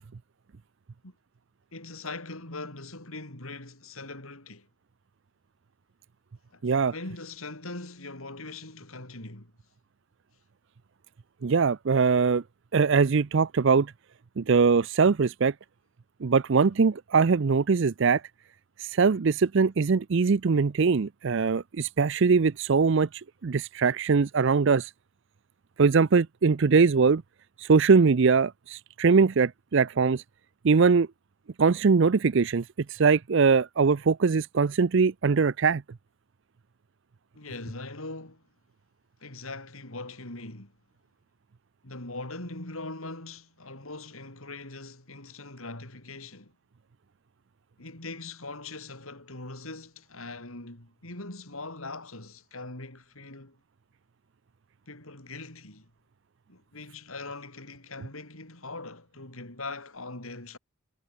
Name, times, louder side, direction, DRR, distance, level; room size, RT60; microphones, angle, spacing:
voice 1, 1.7-4.7 6.5-9.5 37.3-38.4 39.2-40.7 41.8-46.5 47.8-53.6 54.9-55.9 56.5-60.6, left 2 dB, 75° left, 4.9 m, -41 dB
voice 2, 6.6-6.9 11.4-12.4 12.7-13.9 14.4-15.5 16.2-18.2 18.8-23.1 23.4-24.9 25.8-27.2 27.6-30.2 30.6-31.1 31.6-32.6 32.9-35.8, right 5 dB, 55° right, 0.5 m, -22 dB
head